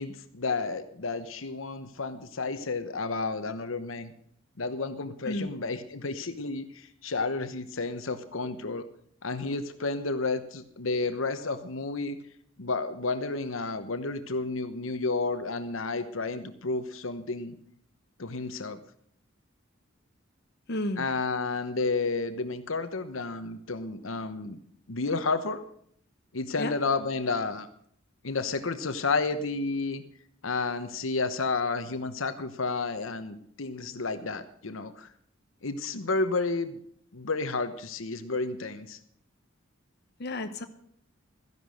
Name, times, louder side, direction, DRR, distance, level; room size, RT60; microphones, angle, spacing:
voice 1, 0.0-4.1 4.6-8.8 9.2-12.2 12.6-17.6 18.2-18.8 21.0-24.6 24.9-25.6 26.3-27.7 28.2-30.0 30.4-35.1 35.6-36.8 37.1-39.0, left 3 dB, 80° left, 10 dB, 1.0 m, -31 dB
voice 2, 20.7-21.0 26.6-26.7 40.2-40.7, left 1 dB, 55° left, 7 dB, 1.0 m, -31 dB
14.0 x 11.0 x 6.4 m, 0.64 s
head